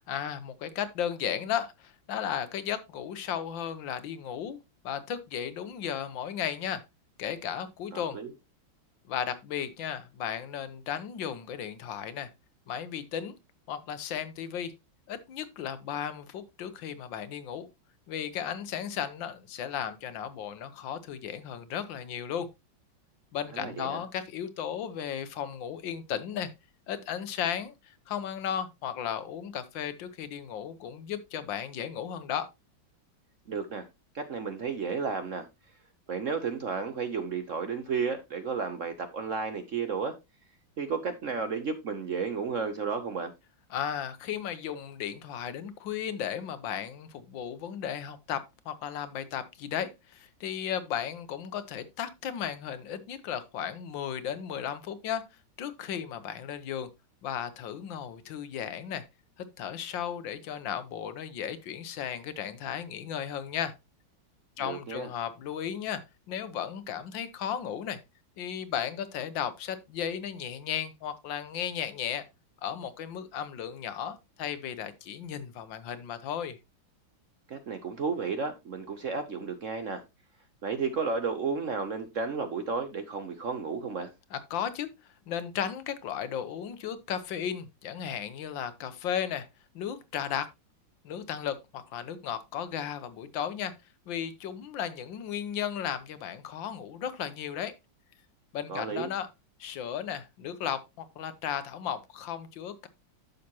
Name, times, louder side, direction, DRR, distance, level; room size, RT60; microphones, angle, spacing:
voice 1, 0.1-4.6 4.8-6.8 7.2-8.2 9.1-12.3 12.7-13.4 13.7-14.7 15.1-17.7 18.1-22.5 23.3-26.5 26.9-32.5 43.7-55.2 55.6-56.9 57.2-59.1 59.4-63.7 64.6-66.0 66.3-68.0 68.4-72.2 72.6-76.6 84.3-84.9 85.3-89.5 89.7-90.5 91.0-93.7 94.1-97.7 98.5-99.3 99.6-102.9, left 9 dB, 75° left, 1.6 m, -35 dB
voice 2, 7.9-8.3 23.5-24.0 33.5-33.9 34.1-35.5 36.1-40.2 40.8-43.3 64.6-65.1 77.5-80.0 80.6-84.1 98.7-99.1, right 5 dB, 55° right, 0.9 m, -32 dB
10.5 x 6.6 x 2.9 m
omnidirectional pair, 2.1 m